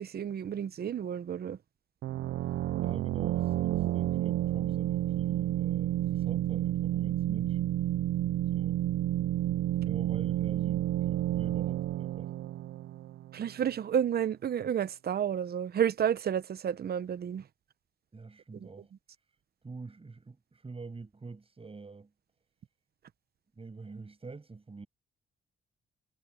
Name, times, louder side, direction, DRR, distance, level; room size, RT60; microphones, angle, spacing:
voice 1, 0.0-1.6 13.3-17.4 18.5-18.7, right 9 dB, 50° right, 0.9 m, -31 dB
sound 1, 2.0-13.5, right 13 dB, 75° right, 0.5 m, -30 dB
voice 2, 2.8-7.6 8.5-8.8 9.8-12.3 18.1-18.9 19.6-22.1 23.6-24.9, right 4 dB, 30° right, 7.8 m, -46 dB
cardioid pair, 85°, 20 cm